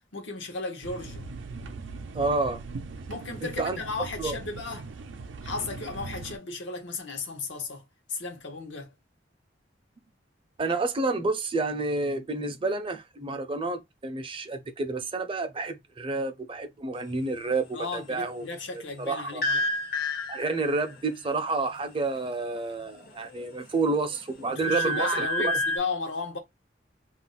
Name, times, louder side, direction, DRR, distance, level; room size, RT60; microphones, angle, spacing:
voice 1, 0.1-1.3 3.1-4.9 5.4-8.9 17.7-19.7 24.5-26.4, left 3 dB, 85° left, 0.8 m, -35 dB
sound 1, 0.8-6.4, right 3 dB, 90° right, 0.5 m, -40 dB
voice 2, 2.1-2.6 3.4-3.8 4.2-4.4 10.6-18.5 18.7-19.5 20.3-25.5, right 3 dB, 30° right, 0.5 m, -29 dB
sound 2, 19.4-20.9 22.9-23.6 24.0-25.8, left 1 dB, 55° left, 0.6 m, -29 dB
2.5 x 2.0 x 3.8 m
head